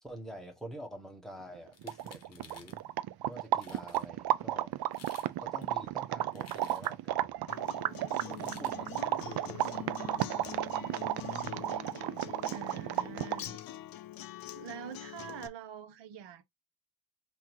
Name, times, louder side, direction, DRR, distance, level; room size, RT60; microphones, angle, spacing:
voice 1, 0.0-2.8 3.2-4.7 5.4-7.4 8.3-11.0, right 1 dB, ahead, 1.2 m, -48 dB
sound 1, 1.5-1.6 1.8-13.6, right 13 dB, 65° right, 0.5 m, -33 dB
sound 2, 1.7-2.8 3.3-3.4 3.6-4.1 4.8-5.3 5.6-7.1 8.2-8.8, left 6 dB, 35° left, 0.9 m, -55 dB
Acoustic guitar, 7.5-15.5, left 12 dB, 55° left, 0.5 m, -44 dB
voice 2, 12.5-13.6 14.5-16.4, right 9 dB, 85° right, 0.9 m, -45 dB
3.7 x 2.7 x 4.5 m
cardioid pair, 165°, 42 cm